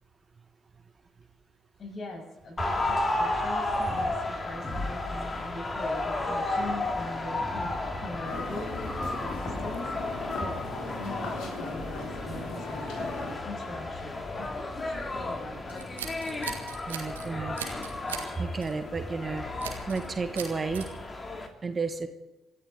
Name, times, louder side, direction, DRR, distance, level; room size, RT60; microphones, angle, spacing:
voice 1, 1.8-15.9 17.9-18.2, left 2 dB, 45° left, 2 dB, 7.1 m, -41 dB
sound 1, 2.6-21.5, left 2 dB, 30° left, 2.7 m, -33 dB
sound 2, 8.2-13.3, left 2 dB, 65° left, 3.6 m, -39 dB
Scissors, 15.7-17.3 17.6-18.3 18.6-18.8 19.6-20.1 20.3-20.9, right 8 dB, 80° right, 1.9 m, -39 dB
voice 2, 16.9-17.6 18.4-19.4 19.9-20.9 21.6-22.1, right 4 dB, 35° right, 8 dB, 1.5 m, -31 dB
28.0 x 13.0 x 3.9 m, 1.0 s
figure-of-eight pair, 45°, 0 cm